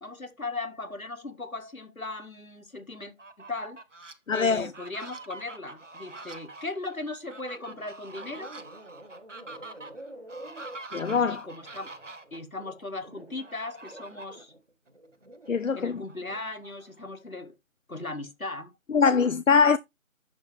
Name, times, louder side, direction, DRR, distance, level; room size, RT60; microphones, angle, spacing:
voice 1, 0.0-3.8 4.3-8.5 11.3-11.9 12.3-14.5 15.7-17.6 17.9-18.7, left 2 dB, 90° left, 2.0 m, -38 dB
Fowl, 3.0-4.1 4.6-12.4 13.4-14.4 14.9-15.0 15.3-17.1, right 2 dB, 60° right, 1.1 m, -45 dB
voice 2, 4.3-4.7 10.9-11.4 15.5-15.9 18.9-19.8, left 5 dB, 65° left, 0.5 m, -22 dB
sound 1, 7.5-7.8 8.1-13.4 13.8-15.6 16.0-16.4, right 1 dB, 45° right, 2.4 m, -48 dB
11.0 x 6.2 x 3.4 m
figure-of-eight pair, 170°, 41 cm